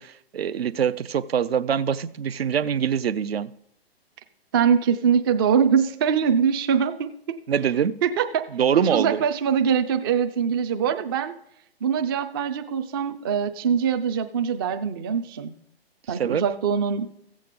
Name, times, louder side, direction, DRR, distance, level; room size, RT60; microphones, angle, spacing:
voice 1, 0.0-3.5 7.5-8.0 8.5-9.2 16.1-16.4, right 8 dB, 70° right, 0.6 m, -24 dB
voice 2, 4.5-7.4 8.0-8.4 8.8-11.3 11.8-15.5 16.1-17.1, right 7 dB, 25° right, 0.4 m, -23 dB
15.0 x 7.5 x 3.7 m
figure-of-eight pair, 125°, 31 cm